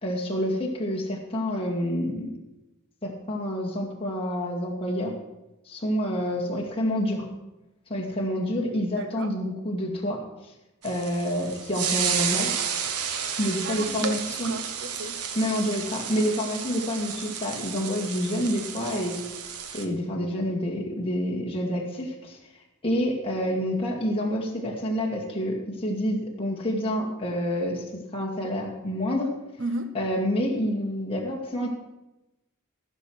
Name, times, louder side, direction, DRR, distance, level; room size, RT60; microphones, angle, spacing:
voice 1, 0.0-2.3 3.0-5.1 5.7-7.3 7.9-10.5 10.8-12.5 13.4-14.5 15.3-19.2 19.7-22.4 22.8-29.3 29.9-31.7, equal, 25° left, 2.1 m, -28 dB
voice 2, 9.0-9.3 13.6-15.2 29.6-29.9, right 2 dB, 55° right, 0.8 m, -34 dB
sound 1, 10.8-19.8, right 7 dB, 85° right, 1.1 m, -32 dB
15.0 x 6.3 x 6.3 m
head